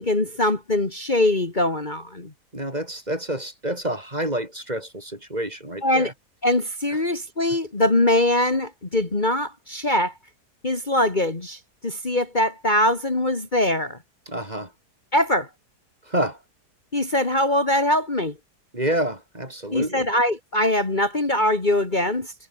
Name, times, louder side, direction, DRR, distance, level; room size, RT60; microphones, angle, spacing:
voice 1, 0.0-2.3 5.8-6.1 6.4-10.1 10.6-14.0 15.1-15.5 16.9-18.3 19.7-22.3, left 1 dB, 30° left, 2.5 m, -22 dB
voice 2, 2.5-6.1 7.5-7.6 14.3-14.7 16.0-16.4 18.7-20.1, right 1 dB, 25° right, 5.3 m, -28 dB
omnidirectional pair, 1.7 m